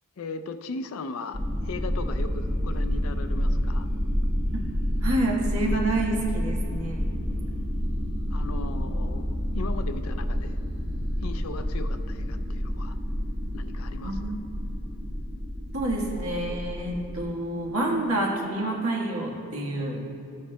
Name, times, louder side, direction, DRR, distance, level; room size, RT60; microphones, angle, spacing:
voice 1, 0.2-3.9 8.3-10.6 11.2-13.0 13.5-14.3, left 3 dB, 75° left, 9 dB, 0.4 m, -38 dB
sound 1, 1.3-17.2, equal, 50° right, 1.5 m, -29 dB
voice 2, 5.0-7.0 14.0-14.4 15.7-20.0, right 1 dB, 80° right, -2 dB, 1.4 m, -28 dB
13.0 x 8.5 x 2.2 m, 2.9 s
head